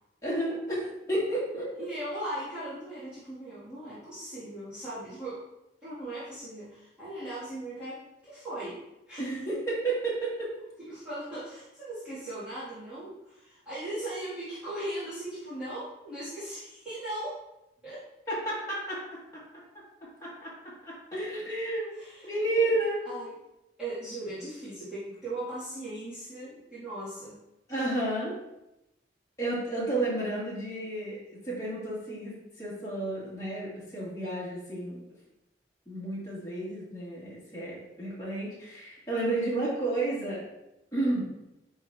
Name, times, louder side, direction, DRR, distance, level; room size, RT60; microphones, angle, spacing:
voice 1, 0.2-1.7 9.2-10.5 18.3-19.0 19.3-19.4 20.2-20.5 20.8-21.9 22.2-23.0 27.7-28.4 29.4-35.0 35.9-40.4 40.9-41.3, right 2 dB, 20° left, -8 dB, 2.2 m, -31 dB
voice 2, 1.8-5.5 5.8-9.3 10.8-17.4 17.8-18.1 21.9-22.3 23.0-23.4 23.8-27.4, right 1 dB, 5° right, -16 dB, 2.4 m, -38 dB
10.0 x 3.7 x 2.8 m, 0.91 s
head